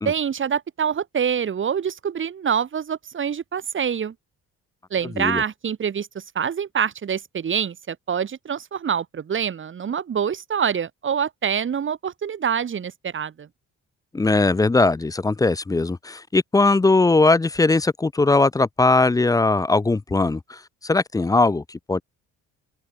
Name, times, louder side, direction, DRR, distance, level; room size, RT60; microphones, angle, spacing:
voice 1, 0.0-4.1 4.9-13.5, right 7 dB, 40° right, 1.4 m, -26 dB
voice 2, 14.1-20.6 20.8-22.0, left 3 dB, 10° left, 0.5 m, -19 dB
open air
cardioid pair, 90°, 30 cm